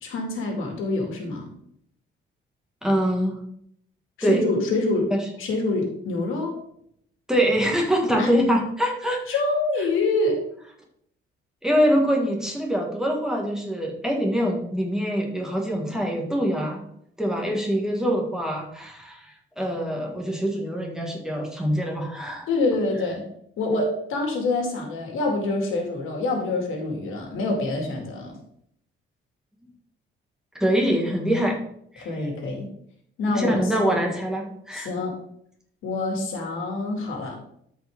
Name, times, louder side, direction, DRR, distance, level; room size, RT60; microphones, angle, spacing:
voice 1, 0.0-1.5 4.2-5.1 5.4-6.5 8.2-8.3 9.3-10.4 22.5-23.3 23.6-28.3 32.0-32.7 33.2-34.0 34.7-35.2 35.8-37.4, left 2 dB, 85° left, 2 dB, 2.3 m, -26 dB
voice 2, 2.8-3.4 4.2-4.4 5.1-5.2 7.3-9.4 11.6-16.8 17.2-22.5 30.6-31.6 31.9-32.1 33.3-34.9, equal, 5° right, -1 dB, 1.7 m, -24 dB
12.5 x 5.1 x 3.6 m, 0.71 s
cardioid pair, 145°, 20 cm